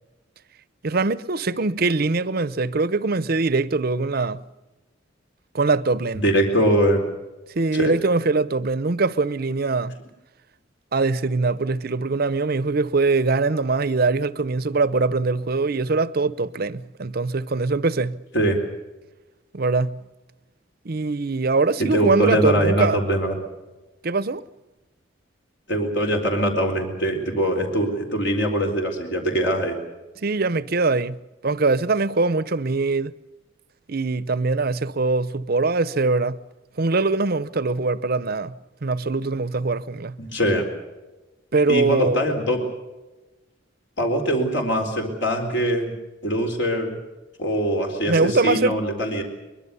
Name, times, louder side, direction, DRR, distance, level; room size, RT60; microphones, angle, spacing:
voice 1, 0.8-4.4 5.5-6.2 7.5-10.0 10.9-18.2 19.5-20.0 20.8-23.0 24.0-24.4 30.2-31.2 31.4-33.1 33.9-36.4 36.8-38.5 38.8-40.2 41.5-42.3 48.1-48.8, right 3 dB, 50° right, 0.7 m, -22 dB
voice 2, 6.2-7.0 7.7-7.9 18.3-18.6 21.8-23.3 25.7-29.8 40.3-40.7 41.7-42.6 44.0-45.9 46.2-47.0 47.4-49.2, equal, 65° left, 4.0 m, -22 dB
23.5 x 22.0 x 6.9 m
head